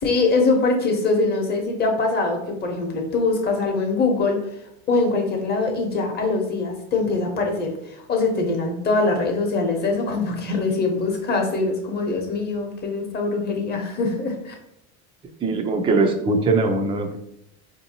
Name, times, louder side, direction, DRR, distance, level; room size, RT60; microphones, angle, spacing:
voice 1, 0.0-4.4 4.9-14.5, left 3 dB, 30° left, 2 dB, 0.9 m, -23 dB
voice 2, 15.4-17.2, right 3 dB, 15° right, 4 dB, 0.4 m, -21 dB
4.4 x 2.7 x 2.8 m, 0.78 s
supercardioid pair, 125°, 35 cm